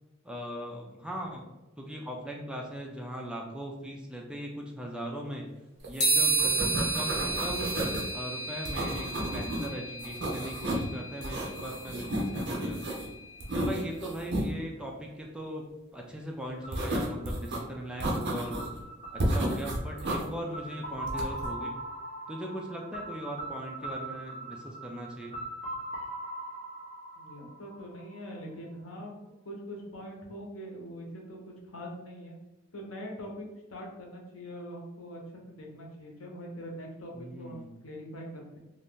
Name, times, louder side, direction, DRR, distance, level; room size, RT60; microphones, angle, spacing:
voice 1, 0.2-1.5 1.8-5.5 5.8-6.6 6.9-7.7 8.1-12.8 13.5-18.6 19.1-21.7 22.3-25.4 37.1-37.7, equal, 5° right, 0 dB, 0.4 m, -39 dB
sound 1, 5.8-6.0 6.3-8.1 8.7-9.7 10.0-10.9 11.2-13.1 13.4-14.5 16.7-17.6 18.0-18.8 19.2-20.2 21.1-21.5, right 1 dB, 55° right, 0.6 m, -32 dB
sound 2, 6.0-13.7, right 3 dB, 60° left, 1.3 m, -32 dB
sound 3, 16.6-28.4, right 1 dB, 40° left, 1.1 m, -41 dB
voice 2, 27.2-32.4 32.7-38.6, equal, 75° left, -1 dB, 0.9 m, -43 dB
2.6 x 2.5 x 3.5 m, 0.99 s
head